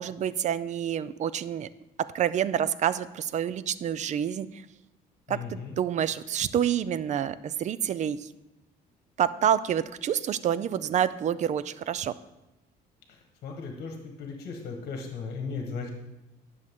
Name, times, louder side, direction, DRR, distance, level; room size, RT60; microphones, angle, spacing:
voice 1, 0.0-1.7 2.1-4.6 5.3-8.3 9.2-12.1, right 9 dB, 45° right, 16 dB, 0.4 m, -28 dB
voice 2, 5.3-5.8 13.4-15.9, left 4 dB, 60° left, 2 dB, 1.3 m, -36 dB
10.5 x 6.4 x 3.7 m, 0.95 s
cardioid pair, 110°, 17 cm